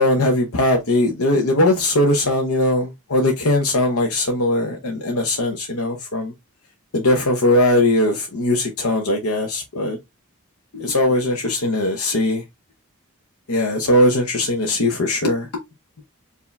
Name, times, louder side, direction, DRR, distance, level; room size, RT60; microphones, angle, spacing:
voice 1, 0.0-6.3 6.9-10.0 10.7-12.4 13.5-15.5, left 1 dB, 80° left, 0.9 m, -19 dB
4.7 x 2.7 x 3.3 m
head